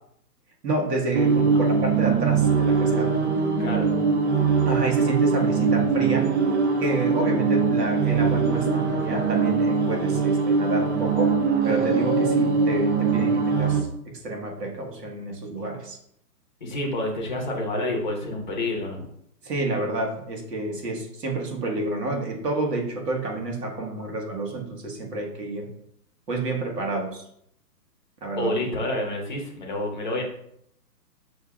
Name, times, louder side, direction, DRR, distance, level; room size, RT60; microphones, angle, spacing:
voice 1, 0.6-3.1 4.7-6.3 6.8-11.3 11.6-16.0 19.4-25.7 26.3-27.2 28.2-28.5, right 2 dB, 70° right, 0 dB, 1.5 m, -29 dB
sound 1, 1.1-13.8, right 5 dB, 45° right, 0.6 m, -22 dB
voice 2, 3.6-3.9 16.6-19.1 28.4-30.2, left 1 dB, 30° left, -1 dB, 0.7 m, -28 dB
6.6 x 2.7 x 2.3 m, 0.70 s
hypercardioid pair, 165°, 49 cm